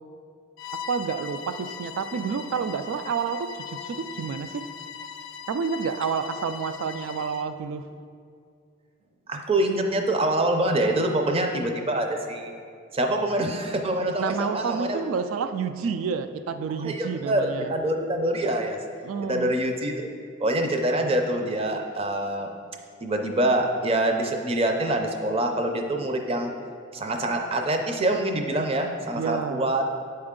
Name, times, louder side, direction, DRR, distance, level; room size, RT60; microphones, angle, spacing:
Bowed string instrument, 0.6-7.5, left 7 dB, 70° left, 0.4 m, -40 dB
voice 1, 0.9-4.6 5.5-7.8 14.2-17.7 19.0-19.5 29.1-29.7, right 6 dB, 90° right, 10 dB, 0.3 m, -29 dB
voice 2, 9.3-12.5 12.9-15.0 16.8-18.8 19.2-20.1 20.4-22.5 23.0-26.5 26.9-29.8, right 1 dB, 30° right, 4 dB, 0.5 m, -25 dB
8.6 x 4.3 x 3.7 m, 2.3 s
head